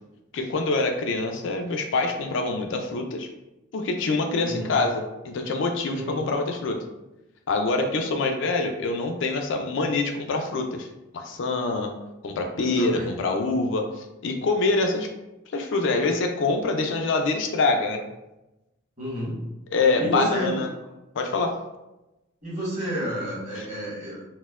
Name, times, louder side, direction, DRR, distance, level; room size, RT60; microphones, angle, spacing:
voice 1, 0.3-3.3 3.7-6.8 7.5-10.9 11.1-11.9 12.2-15.1 15.5-18.0 19.7-20.7 21.1-21.6 23.6-23.7, left 3 dB, 60° left, 4 dB, 0.3 m, -25 dB
voice 2, 4.4-4.7 5.9-6.3 12.6-13.1 19.0-19.4 20.0-20.6 22.4-24.2, equal, 35° right, -7 dB, 1.3 m, -30 dB
4.2 x 2.1 x 2.3 m, 0.98 s
head